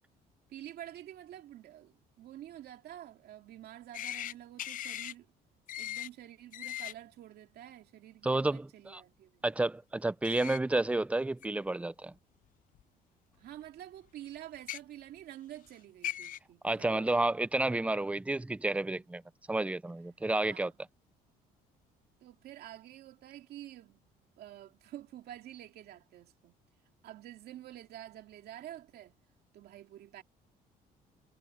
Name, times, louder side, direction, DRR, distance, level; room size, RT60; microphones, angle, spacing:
voice 1, 0.5-5.3 5.8-9.4 13.4-17.3 19.9-20.7 22.2-24.0 24.4-26.5 27.0-29.1 29.5-30.2, right 12 dB, 70° right, 2.5 m, -49 dB
sound 1, 3.9-4.3 4.6-5.1 5.7-6.1 6.5-6.9 10.2-10.6 11.4-11.5 12.7-12.8 14.5-14.8 15.7-15.8 16.0-16.4, left 12 dB, 55° left, 0.5 m, -38 dB
voice 2, 8.2-9.0 9.4-12.1 16.6-19.2 19.5-20.7, right 2 dB, 10° right, 0.6 m, -30 dB
cardioid pair, 110°, 17 cm